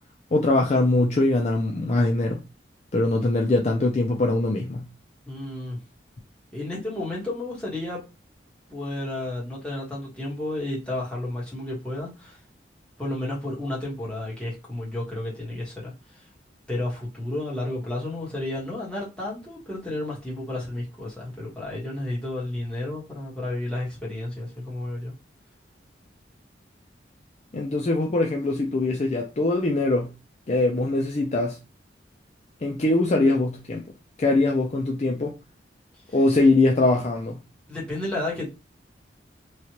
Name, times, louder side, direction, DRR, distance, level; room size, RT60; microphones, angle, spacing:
voice 1, 0.3-2.4 2.9-4.9 27.5-30.1 30.5-31.6 32.6-33.8 34.2-35.3 36.1-37.4, left 2 dB, 35° left, 0.4 m, -22 dB
voice 2, 5.3-5.8 6.5-8.0 8.7-12.4 13.0-16.2 16.7-25.1 36.1-36.2 37.7-38.5, left 1 dB, 5° left, 1.2 m, -32 dB
3.2 x 2.4 x 2.9 m
head